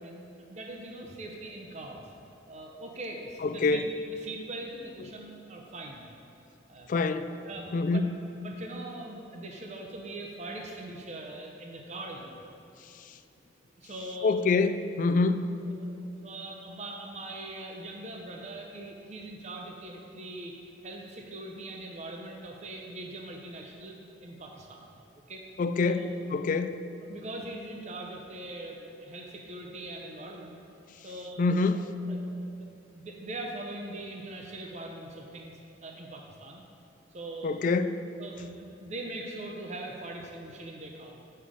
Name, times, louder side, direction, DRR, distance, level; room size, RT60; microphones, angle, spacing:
voice 1, 0.0-2.0 2.5-3.8 4.2-6.1 6.7-6.9 7.5-8.0 8.4-12.4 13.8-14.4 15.8-20.6 20.8-24.9 25.3-25.4 25.8-26.1 27.0-30.6 31.0-31.4 31.7-31.8 32.1-32.2 32.6-32.7 32.9-36.6 37.1-37.6 38.2-38.5 38.8-41.1, right 2 dB, 40° right, 1 dB, 0.6 m, -41 dB
voice 2, 3.4-3.8 6.9-7.3 7.7-8.1 13.0-13.2 14.2-15.4 25.6-26.7 31.4-31.9 37.4-37.9, left 3 dB, 45° left, 10 dB, 0.3 m, -26 dB
8.6 x 5.6 x 4.9 m, 2.6 s
head